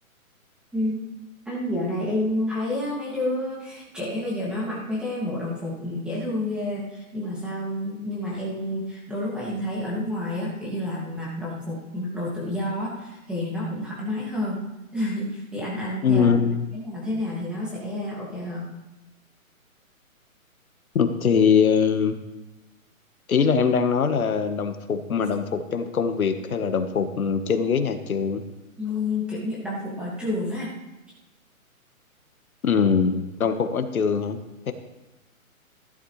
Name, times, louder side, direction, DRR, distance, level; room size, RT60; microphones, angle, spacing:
voice 1, 1.5-14.6 14.9-16.2 16.7-18.7 28.8-30.7, left 1 dB, ahead, -6 dB, 2.3 m, -29 dB
voice 2, 16.0-16.6 20.9-22.2 23.3-28.4 32.6-34.4 34.7-34.8, left 6 dB, 75° left, 8 dB, 1.5 m, -22 dB
16.0 x 11.5 x 3.3 m, 1.0 s
hypercardioid pair, 160°, 43 cm